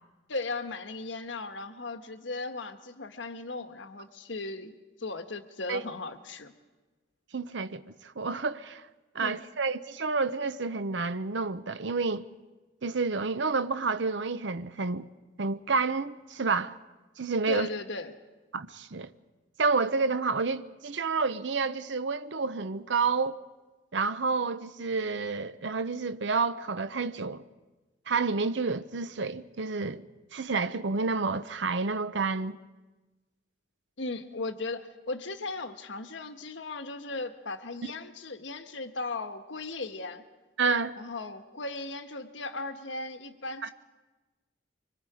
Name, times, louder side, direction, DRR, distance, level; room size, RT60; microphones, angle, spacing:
voice 1, 0.3-6.5 9.2-9.4 17.5-18.1 34.0-40.2 41.0-43.7, left 3 dB, 80° left, 1.4 m, -37 dB
voice 2, 7.3-8.9 9.1-12.2 12.8-15.1 15.4-16.8 17.2-17.7 18.5-19.1 19.6-23.4 23.9-27.4 28.1-30.0 30.3-32.6 40.6-41.0 43.6-43.7, right 4 dB, 70° right, 0.8 m, -29 dB
25.5 x 24.5 x 5.0 m
head